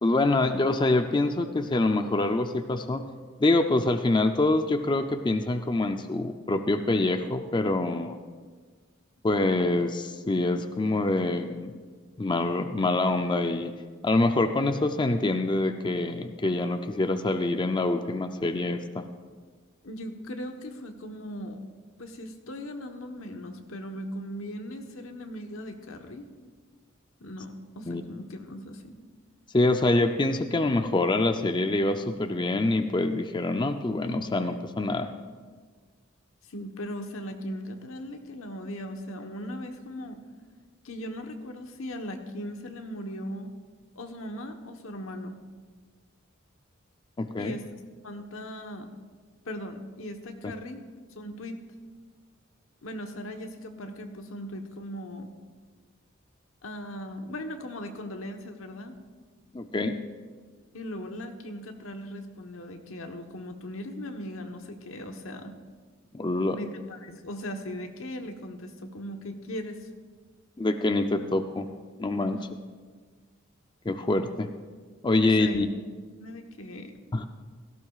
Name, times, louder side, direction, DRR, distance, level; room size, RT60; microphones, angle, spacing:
voice 1, 0.0-3.0 3.4-8.2 9.2-11.7 12.2-13.7 14.0-19.1 27.9-28.0 29.5-35.1 47.2-47.6 50.4-50.5 59.5-60.0 66.1-66.6 70.6-71.7 72.0-72.5 73.9-74.5 75.0-75.7 77.1-77.3, left 2 dB, 25° left, 7 dB, 0.5 m, -25 dB
voice 2, 19.8-21.6 22.0-26.3 27.2-29.0 36.5-40.2 40.8-43.5 43.9-45.4 47.4-47.6 48.0-48.9 49.4-50.8 51.1-51.6 52.8-55.3 56.6-58.9 60.7-65.5 66.5-69.9 72.3-72.5 74.9-75.0 75.2-75.6 76.2-76.9, equal, 85° left, 4 dB, 1.2 m, -38 dB
17.0 x 15.0 x 2.4 m, 1.5 s
head